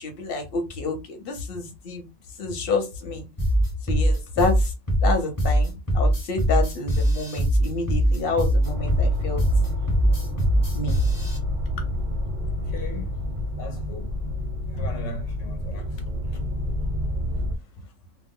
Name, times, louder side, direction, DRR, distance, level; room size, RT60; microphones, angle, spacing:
voice 1, 0.0-2.0 2.4-3.3 3.8-4.7 5.0-9.4 10.7-11.0, left 3 dB, 55° left, 0.9 m, -28 dB
sound 1, 3.4-11.4, equal, 20° left, 0.7 m, -21 dB
sound 2, 8.6-17.6, left 1 dB, 55° right, 0.6 m, -28 dB
voice 2, 12.7-13.1 13.6-14.2 14.7-15.9 16.3-16.7, left 1 dB, 85° left, 1.0 m, -36 dB
2.3 x 2.1 x 3.6 m
omnidirectional pair, 1.3 m